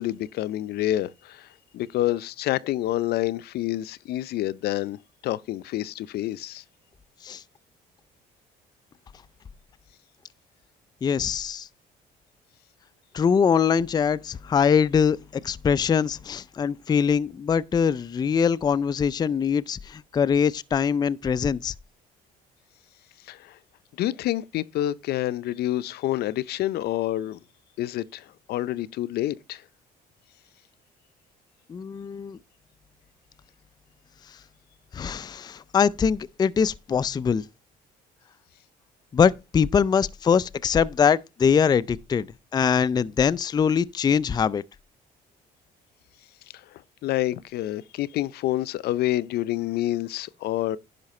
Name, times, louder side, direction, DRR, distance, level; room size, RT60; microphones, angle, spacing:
voice 1, 0.0-1.5 1.7-6.6 23.3-23.6 24.0-27.4 27.8-29.6 47.0-50.8, left 14 dB, 70° left, 0.6 m, -28 dB
voice 2, 11.0-11.7 13.1-15.2 15.4-21.7 31.7-32.4 34.9-37.4 39.1-42.3 42.5-44.6, left 7 dB, 25° left, 0.4 m, -23 dB
10.5 x 5.7 x 4.2 m
cardioid pair, 110°, 17 cm